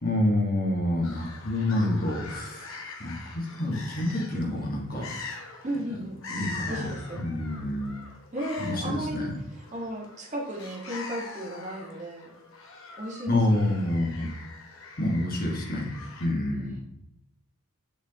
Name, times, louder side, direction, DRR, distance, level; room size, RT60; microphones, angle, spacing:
voice 1, 0.0-5.2 6.3-8.0 8.6-9.3 13.3-14.3 15.0-15.9 16.2-16.8, left 1 dB, 40° left, 0 dB, 1.6 m, -28 dB
sound 1, 1.0-16.3, left 4 dB, 60° left, 1.3 m, -43 dB
voice 2, 5.6-6.2 6.7-7.2 8.3-12.3 13.0-13.8 16.5-16.7, equal, 30° right, -4 dB, 1.5 m, -35 dB
7.0 x 6.2 x 2.9 m, 0.81 s
head